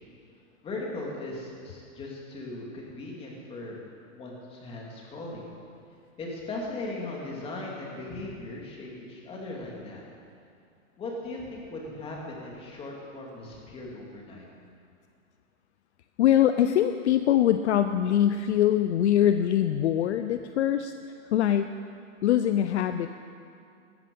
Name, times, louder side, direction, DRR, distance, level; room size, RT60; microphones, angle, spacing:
voice 1, 0.6-3.8 4.1-5.5 6.2-10.0 11.0-14.5, left 2 dB, 15° left, -2 dB, 2.6 m, -38 dB
voice 2, 16.2-21.7 22.2-23.2, left 11 dB, 55° left, 9 dB, 0.6 m, -23 dB
16.5 x 13.5 x 5.4 m, 2.3 s
hypercardioid pair, 160°, 40 cm